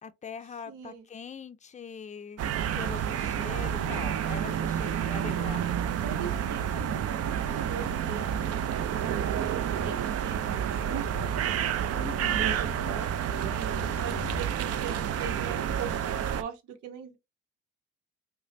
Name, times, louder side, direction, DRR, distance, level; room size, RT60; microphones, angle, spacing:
voice 1, 0.0-5.6 12.0-12.5, left 6 dB, 25° left, 0.5 m, -42 dB
voice 2, 0.7-1.1 6.0-8.6 9.0-11.3 12.3-13.7 14.0-17.2, right 6 dB, 75° right, 1.0 m, -40 dB
sound 1, 2.4-16.4, right 9 dB, 50° right, 0.6 m, -29 dB
sound 2, 6.3-8.4 8.9-10.0 10.3-13.0 13.3-14.8, left 4 dB, 15° right, 1.3 m, -44 dB
4.9 x 2.2 x 2.6 m
supercardioid pair, 70°, 31 cm